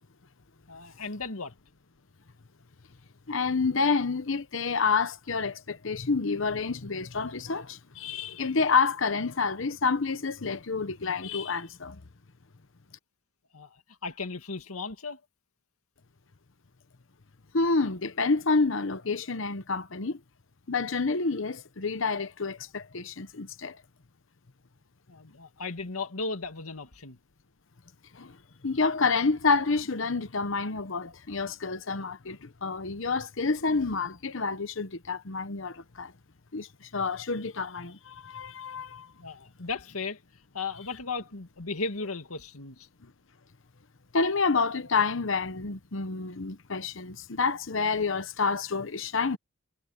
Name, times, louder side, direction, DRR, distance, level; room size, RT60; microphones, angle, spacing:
voice 1, 0.7-1.5 13.5-13.8 14.0-15.2 25.1-27.2 39.2-40.2 40.5-42.9, left 4 dB, 90° left, 2.2 m, -36 dB
voice 2, 3.3-12.0 17.5-20.2 20.7-23.8 28.1-28.4 28.6-36.1 36.5-39.1 43.0-43.1 44.1-49.4, left 4 dB, 60° left, 1.0 m, -28 dB
head